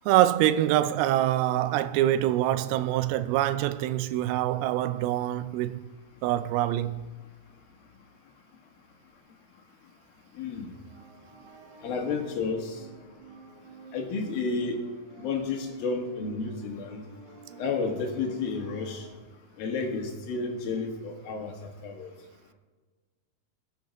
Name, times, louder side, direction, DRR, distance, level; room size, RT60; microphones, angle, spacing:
voice 1, 0.1-5.9 6.2-7.1, right 13 dB, 85° right, 2.5 m, -25 dB
voice 2, 10.4-10.7 11.8-12.8 13.9-14.8 15.2-17.0 17.6-19.1 19.6-22.1, left 4 dB, 70° left, 3.3 m, -31 dB
sound 1, 10.7-19.2, right 4 dB, 50° right, 1.7 m, -52 dB
21.0 x 7.9 x 5.2 m
omnidirectional pair, 4.4 m